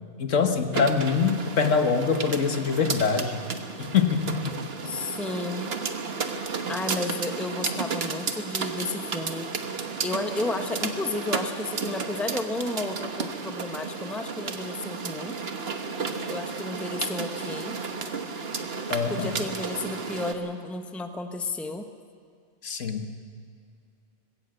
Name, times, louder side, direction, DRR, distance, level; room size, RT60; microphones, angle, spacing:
voice 1, 0.2-3.4 3.8-4.6 18.9-19.4 22.6-23.1, left 6 dB, 75° left, 7 dB, 1.6 m, -24 dB
sound 1, 0.7-20.3, right 4 dB, 55° right, 1.4 m, -33 dB
voice 2, 4.8-5.7 6.7-9.5 10.0-15.4 16.3-17.8 19.1-21.9, left 2 dB, ahead, 6 dB, 0.8 m, -32 dB
20.0 x 16.5 x 7.8 m, 2.2 s
omnidirectional pair, 1.3 m